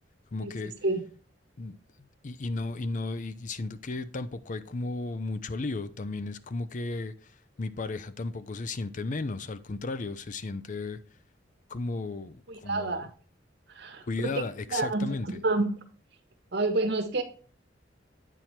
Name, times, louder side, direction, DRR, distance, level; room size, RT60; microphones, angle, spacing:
voice 1, 0.3-0.7 1.6-7.3 7.6-11.0 11.7-13.1 14.1-15.3, left 3 dB, 45° left, 0.5 m, -34 dB
voice 2, 12.5-13.1 13.8-14.4 14.7-15.8 16.5-17.2, right 2 dB, 65° right, 1.3 m, -28 dB
9.0 x 4.6 x 4.2 m
head